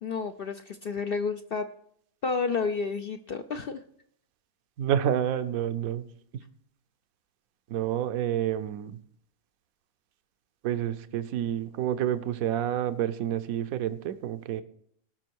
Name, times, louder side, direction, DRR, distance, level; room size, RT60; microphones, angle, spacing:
voice 1, 0.0-1.7 2.2-3.8, left 5 dB, 60° left, 7 dB, 0.6 m, -30 dB
voice 2, 4.8-6.1 7.7-9.0 10.6-14.6, right 10 dB, 75° right, 11 dB, 1.1 m, -29 dB
18.0 x 6.1 x 4.6 m, 0.67 s
omnidirectional pair, 1.5 m